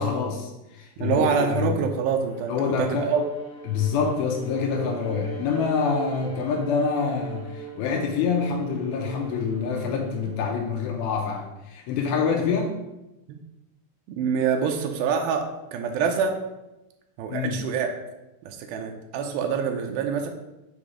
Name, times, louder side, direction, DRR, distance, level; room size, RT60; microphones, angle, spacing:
voice 1, 0.0-1.8 2.5-3.1 3.7-12.8 17.3-17.6, left 5 dB, 85° left, 2 dB, 2.5 m, -26 dB
voice 2, 1.0-3.2 13.3-13.4 14.2-16.4 17.2-17.9 18.5-20.3, right 6 dB, 85° right, 4 dB, 2.4 m, -26 dB
Bowed string instrument, 2.2-10.6, right 6 dB, 60° left, 2.8 m, -40 dB
7.1 x 3.0 x 4.9 m, 0.96 s
omnidirectional pair, 4.3 m